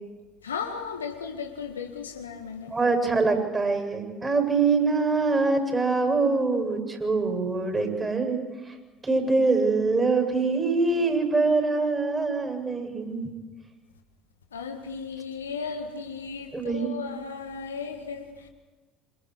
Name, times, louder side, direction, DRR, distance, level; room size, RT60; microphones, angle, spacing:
voice 1, 0.4-2.7 14.5-18.5, left 5 dB, 80° left, 1.9 m, -35 dB
voice 2, 2.7-8.4 9.0-13.3 16.5-16.9, right 3 dB, 20° right, 7.6 m, -24 dB
28.5 x 26.5 x 4.9 m
figure-of-eight pair, 60°, 0 cm